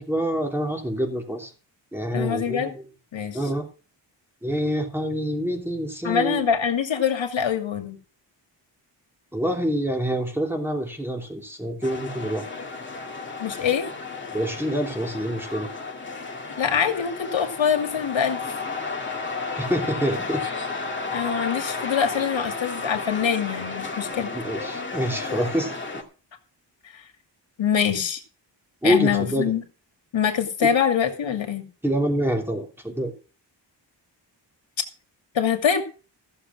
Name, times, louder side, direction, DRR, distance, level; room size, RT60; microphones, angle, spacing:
voice 1, 0.0-1.5 1.9-2.8 3.3-3.7 4.4-6.4 9.3-12.5 14.3-15.7 19.6-20.4 24.3-25.7 28.8-29.5 30.6-30.7 31.8-33.1, equal, 5° right, 2 dB, 3.1 m, -26 dB
voice 2, 2.1-2.7 3.1-3.4 6.0-8.0 13.4-13.9 16.6-18.4 21.1-24.3 27.6-28.2 28.8-29.6 30.1-31.6 35.3-35.8, left 7 dB, 85° left, 5 dB, 2.6 m, -24 dB
sound 1, 11.8-26.0, left 3 dB, 25° left, 2.2 m, -33 dB
15.0 x 7.2 x 6.1 m, 0.35 s
wide cardioid pair, 130°, 44 cm